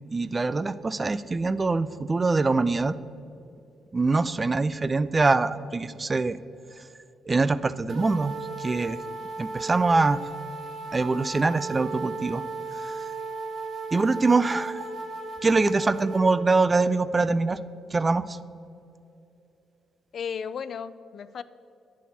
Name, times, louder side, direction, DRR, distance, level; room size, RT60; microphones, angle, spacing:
voice 1, 0.1-2.9 3.9-6.4 7.3-9.0 9.4-10.2 10.9-12.4 12.8-12.9 13.9-14.9 15.4-17.6 17.9-18.4, right 3 dB, 25° right, 15 dB, 0.3 m, -24 dB
sound 1, 7.9-16.4, right 3 dB, 60° right, 1.1 m, -35 dB
voice 2, 20.1-21.4, left 7 dB, 55° left, 14 dB, 0.3 m, -34 dB
10.5 x 8.4 x 4.2 m, 2.7 s
cardioid pair, 90°, 0 cm